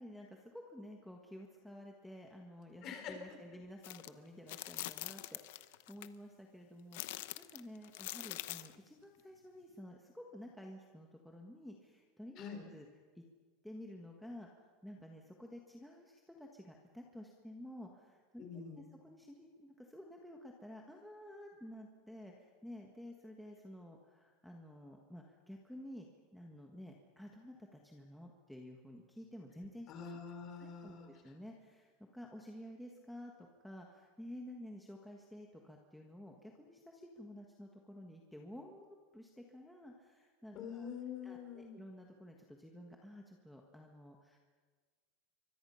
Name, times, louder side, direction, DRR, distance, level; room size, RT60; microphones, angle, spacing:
voice 1, 0.0-12.4 12.7-12.8 13.1-13.2 13.6-14.5 14.8-26.1 26.3-29.9 30.6-40.9 41.2-44.4, left 1 dB, ahead, 0 dB, 1.5 m, -52 dB
voice 2, 2.8-3.1 12.4-12.7 18.4-18.9 29.9-31.1 40.5-41.8, left 7 dB, 35° left, 4 dB, 4.5 m, -45 dB
sound 1, 3.8-4.1 4.5-6.1 6.9-8.7, left 17 dB, 70° left, 0.8 m, -44 dB
28.5 x 24.5 x 5.7 m, 1.5 s
supercardioid pair, 170°, 0 cm